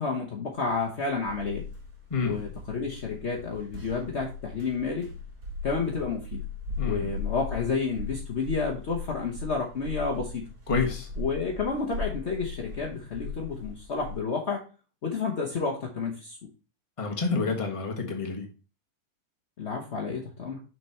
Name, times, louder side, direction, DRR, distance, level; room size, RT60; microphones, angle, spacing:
voice 1, 0.0-1.6 2.2-5.1 5.6-6.4 6.8-10.5 11.2-14.6 15.0-16.4 19.6-20.6, left 4 dB, 45° left, 1.2 m, -30 dB
pasos suaves en superboard, 0.7-14.2, left 4 dB, 65° right, 3.1 m, -38 dB
voice 2, 6.8-7.1 10.7-11.1 17.0-18.5, left 4 dB, 20° left, 1.4 m, -28 dB
6.6 x 4.6 x 4.3 m
omnidirectional pair, 1.7 m